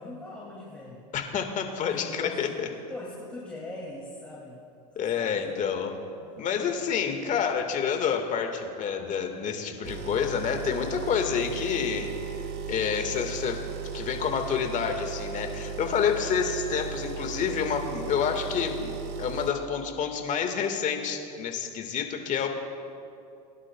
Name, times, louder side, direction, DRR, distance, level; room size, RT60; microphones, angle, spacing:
voice 1, 0.0-1.0 1.9-2.6 2.9-4.6 4.9-5.4 6.2-6.8, left 2 dB, 5° left, -5 dB, 2.3 m, -41 dB
voice 2, 1.1-2.7 4.9-6.0 6.4-12.1 12.7-13.6 13.9-22.5, left 7 dB, 35° left, 5 dB, 1.6 m, -28 dB
sound 1, 9.8-19.5, right 6 dB, 55° right, 1.4 m, -36 dB
21.0 x 11.0 x 2.2 m, 2.6 s
hypercardioid pair, 100°, 21 cm